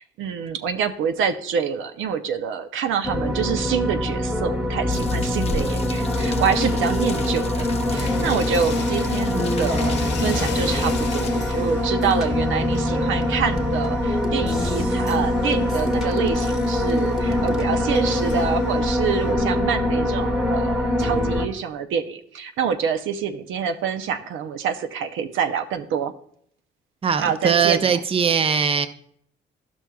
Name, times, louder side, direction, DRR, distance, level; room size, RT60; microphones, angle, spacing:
voice 1, 0.0-26.1 27.2-27.9, right 7 dB, 80° right, 8 dB, 0.6 m, -26 dB
sound 1, 3.0-21.5, left 1 dB, ahead, 1.2 m, -23 dB
sound 2, 4.9-11.3, left 5 dB, 30° left, 0.5 m, -38 dB
sound 3, 7.9-19.3, left 7 dB, 60° left, 0.8 m, -41 dB
voice 2, 27.0-28.9, right 7 dB, 30° right, 10 dB, 0.5 m, -20 dB
11.5 x 6.1 x 2.3 m, 0.64 s
cardioid pair, 90°, 20 cm